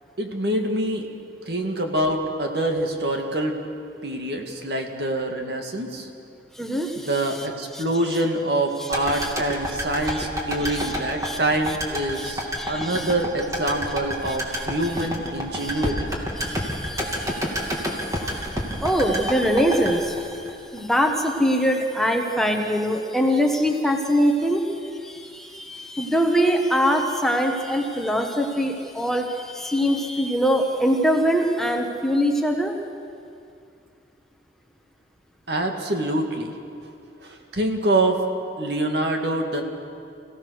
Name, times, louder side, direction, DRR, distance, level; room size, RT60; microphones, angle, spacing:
voice 1, 0.2-1.1 1.5-3.6 4.0-6.1 7.0-16.1 35.5-36.5 37.2-38.2 38.6-39.6, right 1 dB, 65° right, 3 dB, 2.2 m, -25 dB
voice 2, 6.6-7.1 7.7-7.8 8.8-9.3 10.1-10.2 10.6-10.9 11.2-11.4 11.7-11.8 12.1-13.1 14.2-14.7 15.5-15.9 16.4-20.5 20.7-32.7, equal, ahead, 2 dB, 1.4 m, -24 dB
sound 1, 8.9-21.1 21.4-21.5, equal, 20° right, 2.7 m, -29 dB
27.0 x 16.5 x 6.5 m, 2.5 s
head